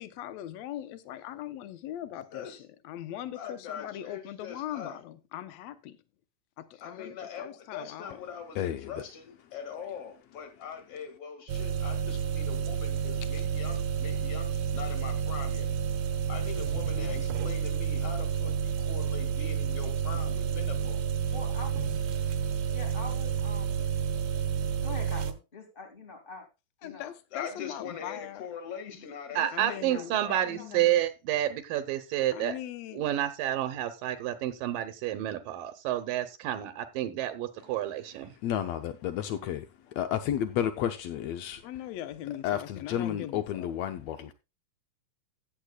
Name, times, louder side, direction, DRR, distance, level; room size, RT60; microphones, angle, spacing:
voice 1, 0.0-6.0 6.6-8.2 16.9-17.2 26.8-28.5 29.5-31.0 32.3-33.1 41.6-43.7, left 12 dB, 70° left, 1.7 m, -40 dB
voice 2, 3.3-5.0 6.8-15.7 16.3-21.0 27.3-30.5, left 7 dB, 50° left, 2.7 m, -42 dB
voice 3, 8.5-9.0 38.4-41.6 42.3-44.3, left 10 dB, 90° left, 1.5 m, -32 dB
sound 1, 11.5-25.3, right 7 dB, 65° right, 1.8 m, -30 dB
voice 4, 21.3-22.0 22.7-23.9 24.3-26.5 26.8-27.1 28.9-30.9, left 3 dB, 20° left, 1.9 m, -45 dB
voice 5, 29.4-32.6 32.9-38.3, right 12 dB, 85° right, 2.5 m, -29 dB
15.0 x 9.2 x 2.3 m
omnidirectional pair, 3.9 m